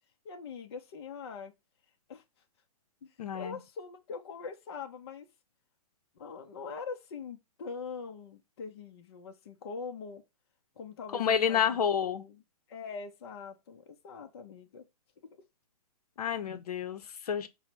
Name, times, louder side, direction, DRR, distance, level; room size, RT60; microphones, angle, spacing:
voice 1, 0.2-1.5 2.1-2.2 3.3-5.3 6.2-10.2 10.8-12.4 12.7-14.8, left 5 dB, 45° left, 0.6 m, -43 dB
voice 2, 3.2-3.6 11.1-12.2 16.2-17.5, left 8 dB, 80° left, 0.7 m, -29 dB
5.3 x 2.1 x 4.4 m
hypercardioid pair, 170°, 19 cm